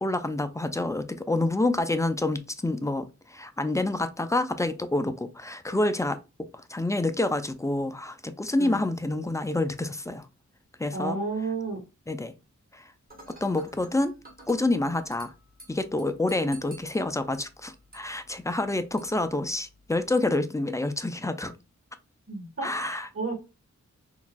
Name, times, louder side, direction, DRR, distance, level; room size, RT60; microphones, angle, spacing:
voice 1, 0.0-10.3 10.8-11.2 12.1-12.3 12.7-12.9 13.4-14.1 14.5-15.3 15.7-21.5 22.6-23.1, left 2 dB, 10° left, 0.3 m, -28 dB
voice 2, 10.9-11.8 22.3-23.3, right 3 dB, 50° right, 1.3 m, -32 dB
Dishes pots and pans / Glass, 13.1-20.1, right 2 dB, 30° right, 1.5 m, -53 dB
3.9 x 2.5 x 2.2 m
wide cardioid pair, 100°, 30 cm